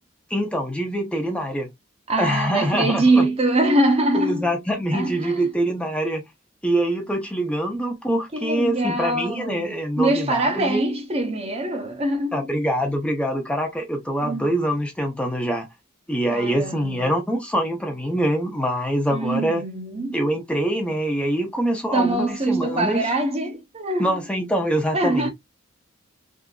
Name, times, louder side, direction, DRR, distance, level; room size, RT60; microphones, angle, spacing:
voice 1, 0.3-1.7 2.2-3.0 4.1-6.2 6.6-10.8 12.3-15.7 16.1-19.6 20.1-23.2 24.0-25.3, right 1 dB, 5° left, 0.6 m, -24 dB
voice 2, 2.1-4.5 4.9-5.5 8.3-12.5 14.2-14.5 16.3-17.2 19.1-20.2 21.9-24.1 24.9-25.3, right 2 dB, 30° right, 0.7 m, -23 dB
3.6 x 2.6 x 2.3 m
head